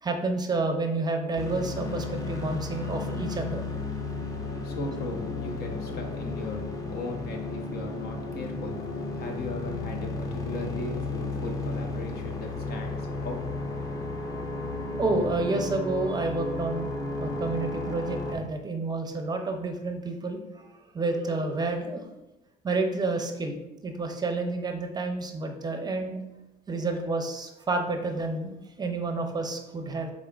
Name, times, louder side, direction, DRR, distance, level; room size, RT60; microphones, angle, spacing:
voice 1, 0.0-3.6 15.0-16.9 17.2-22.1 22.6-26.2 26.7-30.1, right 3 dB, 25° right, 5 dB, 0.5 m, -30 dB
sound 1, 1.4-18.3, left 2 dB, 20° left, 0.6 m, -33 dB
voice 2, 4.6-6.6 6.9-13.4, left 2 dB, 65° left, 3 dB, 0.8 m, -37 dB
4.9 x 3.6 x 2.3 m, 0.95 s
cardioid pair, 110°, 17 cm